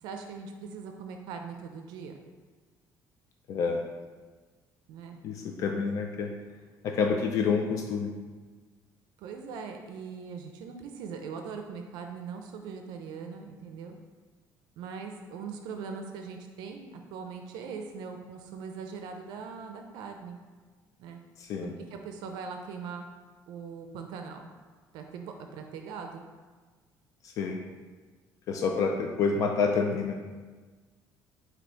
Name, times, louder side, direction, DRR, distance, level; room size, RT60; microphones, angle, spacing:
voice 1, 0.0-2.2 4.9-5.2 9.2-14.0 14.8-20.4 21.0-21.2 21.6-23.1 23.5-24.5 24.9-26.2, right 5 dB, 80° right, 4 dB, 0.4 m, -41 dB
voice 2, 3.5-3.8 5.2-6.3 6.8-8.1 21.4-21.7 27.2-27.6 28.5-30.2, left 5 dB, 50° left, 2 dB, 0.3 m, -28 dB
4.2 x 2.7 x 4.5 m, 1.4 s
cardioid pair, 170°, 7 cm